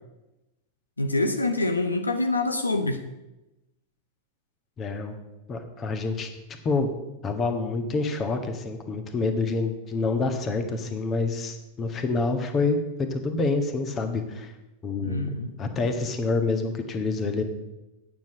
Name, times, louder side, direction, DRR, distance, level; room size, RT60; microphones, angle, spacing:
voice 1, 1.0-3.0 15.0-15.5, left 2 dB, 80° left, 7 dB, 0.8 m, -26 dB
voice 2, 4.8-5.1 5.5-6.3 6.6-6.9 7.2-14.5 14.8-15.3 15.6-17.4, left 3 dB, 25° left, 7 dB, 1.5 m, -27 dB
9.3 x 7.3 x 7.6 m, 0.98 s
figure-of-eight pair, 90°, 0 cm